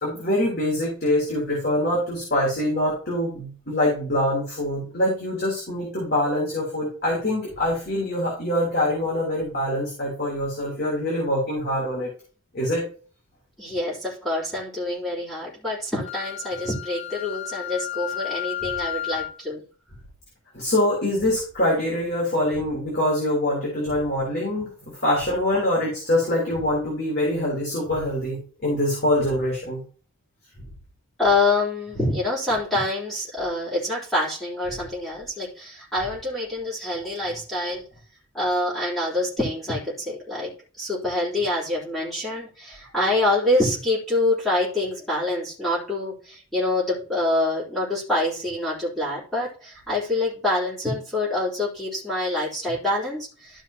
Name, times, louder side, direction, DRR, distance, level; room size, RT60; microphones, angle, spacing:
voice 1, 0.0-12.1 12.5-12.8 20.5-29.8, left 1 dB, 50° left, -4 dB, 3.5 m, -24 dB
voice 2, 13.6-19.6 31.2-37.8 38.3-40.5 40.8-53.6, left 2 dB, ahead, -10 dB, 3.8 m, -26 dB
Wind instrument woodwind instrument, 16.0-19.4, left 13 dB, 30° left, 0.8 m, -32 dB
13.5 x 5.6 x 2.9 m, 0.40 s
head